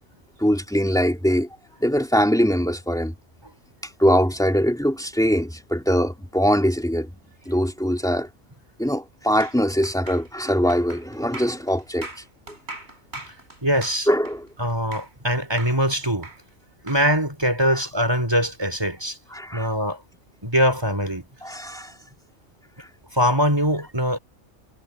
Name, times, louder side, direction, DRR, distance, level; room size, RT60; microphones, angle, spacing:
voice 1, 0.4-1.5 1.8-3.1 3.8-7.2 7.5-8.3 8.8-12.1 14.1-14.5 19.3-19.7 21.4-21.9 22.8-22.9, equal, 5° left, 2.7 m, -22 dB
sound 1, 9.4-15.3 15.6-17.0, right 2 dB, 50° right, 5.5 m, -40 dB
voice 2, 13.6-14.1 14.6-16.3 16.8-19.2 19.5-20.0 20.4-21.2 23.1-24.2, equal, 20° right, 4.2 m, -22 dB
omnidirectional pair, 1.4 m